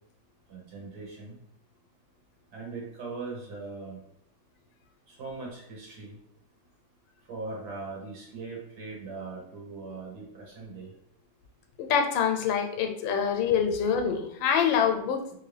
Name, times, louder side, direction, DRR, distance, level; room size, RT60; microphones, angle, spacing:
voice 1, 0.5-1.3 2.5-4.0 5.1-6.1 7.3-10.9, right 3 dB, 60° right, -3 dB, 1.4 m, -40 dB
voice 2, 11.8-15.4, left 7 dB, 85° left, 5 dB, 1.3 m, -25 dB
3.2 x 2.6 x 3.2 m, 0.72 s
omnidirectional pair, 2.0 m